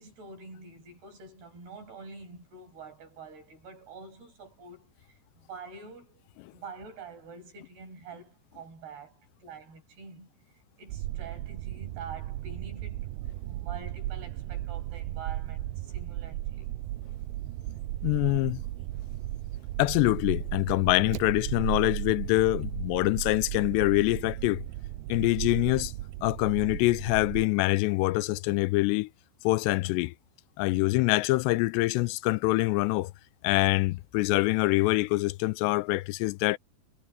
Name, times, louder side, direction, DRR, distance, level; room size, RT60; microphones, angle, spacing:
voice 1, 0.0-6.2 6.5-10.3 10.8-13.1 13.4-16.7, right 4 dB, 70° right, 9.9 m, -46 dB
sound 1, 10.9-27.5, right 15 dB, 85° right, 2.1 m, -36 dB
voice 2, 18.0-18.6 19.8-24.6 25.1-25.9 26.2-29.1 29.4-30.1 30.6-33.1 33.4-36.6, left 21 dB, 85° left, 2.7 m, -25 dB
omnidirectional pair, 4.9 m